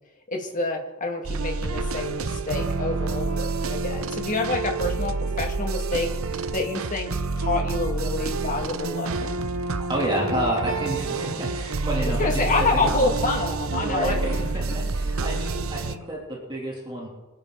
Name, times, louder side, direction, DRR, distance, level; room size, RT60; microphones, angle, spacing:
voice 1, 0.3-9.4 12.0-14.8, left 3 dB, 40° left, 2 dB, 2.4 m, -28 dB
sound 1, 1.2-16.0, right 3 dB, 90° right, 0.8 m, -28 dB
voice 2, 9.9-12.4 12.7-13.2 13.8-17.1, right 1 dB, 25° right, -4 dB, 3.3 m, -29 dB
24.0 x 9.4 x 4.1 m, 1.2 s
head